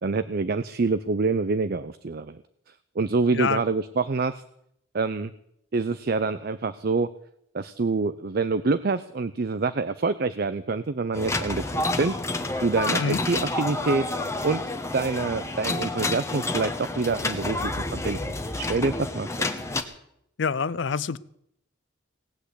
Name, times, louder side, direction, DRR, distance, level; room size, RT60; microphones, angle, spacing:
voice 1, 0.0-2.4 3.0-4.4 4.9-5.3 5.7-7.1 7.5-12.2 12.6-14.1 14.4-14.6 14.9-18.2 18.6-19.5, right 4 dB, 50° right, 13 dB, 0.5 m, -26 dB
voice 2, 3.3-3.6 13.0-13.2 20.4-21.2, left 5 dB, 70° left, 18 dB, 0.5 m, -26 dB
sound 1, 11.1-19.8, left 2 dB, 15° left, 1.1 m, -29 dB
18.0 x 8.2 x 8.2 m, 0.75 s
head